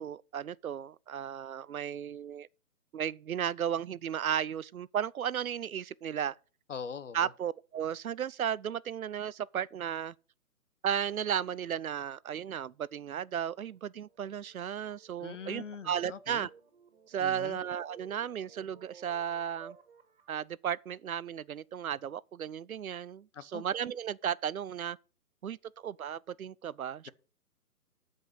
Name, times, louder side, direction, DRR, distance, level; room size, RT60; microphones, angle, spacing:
voice 1, 0.0-2.5 2.9-6.3 7.1-10.1 10.8-16.5 17.1-19.8 20.3-25.0 25.4-25.6 25.8-27.1, right 9 dB, 65° right, 0.6 m, -34 dB
voice 2, 6.7-7.3 15.2-16.5 17.2-17.6 23.3-23.7, left 6 dB, 55° left, 1.0 m, -42 dB
sound 1, 13.6-20.4, right 6 dB, 35° right, 2.5 m, -57 dB
13.0 x 5.5 x 6.4 m
hypercardioid pair, 170°, 46 cm